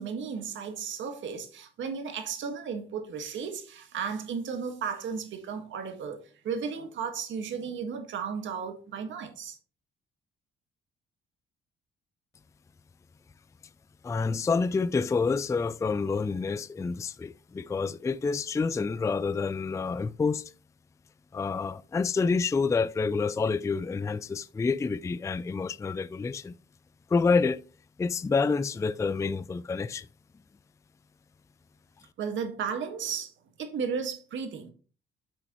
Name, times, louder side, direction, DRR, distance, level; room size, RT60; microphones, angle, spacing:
voice 1, 0.0-6.2 6.4-9.6 32.2-33.3 33.6-34.7, right 6 dB, 70° right, 1.7 m, -34 dB
voice 2, 14.0-20.5 21.3-26.6 27.1-27.6 28.0-30.1, left 4 dB, 15° left, 0.4 m, -28 dB
9.2 x 6.0 x 3.0 m
cardioid pair, 90°, 20 cm